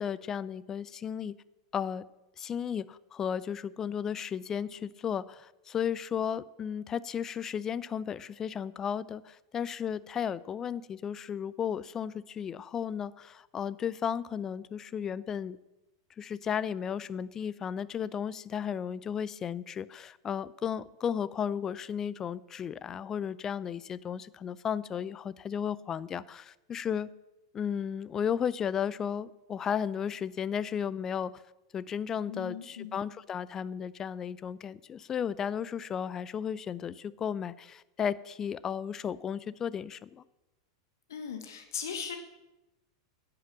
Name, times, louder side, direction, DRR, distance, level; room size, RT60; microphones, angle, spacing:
voice 1, 0.0-1.3 1.7-2.0 2.4-15.6 16.2-27.1 27.5-31.4 31.7-40.2, left 8 dB, 25° left, 18 dB, 0.4 m, -34 dB
voice 2, 32.3-33.1 41.1-42.2, left 7 dB, 65° left, 7 dB, 1.4 m, -38 dB
11.0 x 7.8 x 7.1 m, 0.98 s
figure-of-eight pair, 90°, 2 cm